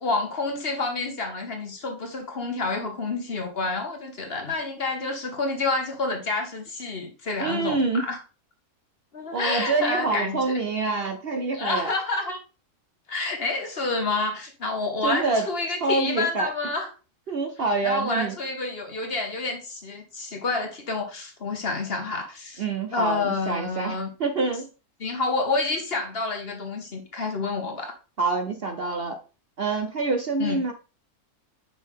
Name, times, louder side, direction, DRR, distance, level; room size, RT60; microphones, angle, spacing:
voice 1, 0.0-8.2 9.1-10.6 11.5-12.4 13.1-16.9 17.8-22.6 22.9-24.1 25.0-27.9 30.4-30.6, left 3 dB, 45° left, 3 dB, 1.4 m, -28 dB
voice 2, 7.4-8.1 9.3-11.9 15.0-15.5 15.8-16.5 17.3-18.4 22.6-24.7 28.2-29.2 29.6-30.7, right 3 dB, 50° right, 6 dB, 0.8 m, -26 dB
6.2 x 5.3 x 3.6 m, 0.33 s
omnidirectional pair, 1.5 m